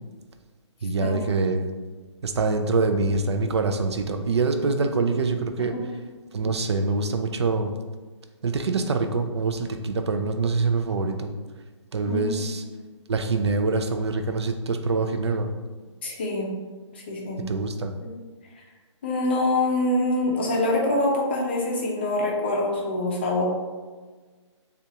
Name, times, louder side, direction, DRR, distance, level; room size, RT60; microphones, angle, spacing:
voice 1, 0.8-1.7 2.2-5.8 6.3-7.7 8.4-11.3 11.9-12.6 13.1-15.5 17.5-17.9, right 3 dB, 60° right, 6 dB, 0.5 m, -25 dB
voice 2, 12.1-12.5 16.0-16.5 16.9-17.4 18.0-18.1 19.0-23.4, left 2 dB, 20° left, -2 dB, 0.6 m, -25 dB
6.8 x 2.4 x 2.8 m, 1.4 s
hypercardioid pair, 175°, 16 cm